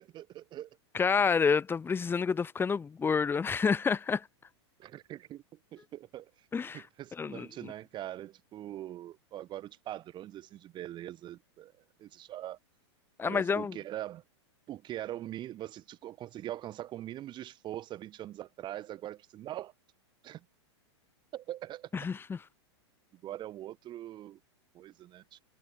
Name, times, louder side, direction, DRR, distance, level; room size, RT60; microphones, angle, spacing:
voice 1, 0.0-0.8 4.8-5.4 5.7-6.3 6.7-11.7 12.0-12.6 13.2-14.2 14.7-19.7 20.2-20.4 21.3-21.9 23.1-24.4 24.7-25.4, right 13 dB, 30° right, 7.7 m, -42 dB
voice 2, 0.9-4.2 6.5-6.8 7.2-7.7 13.2-13.8 21.9-22.4, left 5 dB, 15° left, 5.0 m, -29 dB
hypercardioid pair, 130°, 15 cm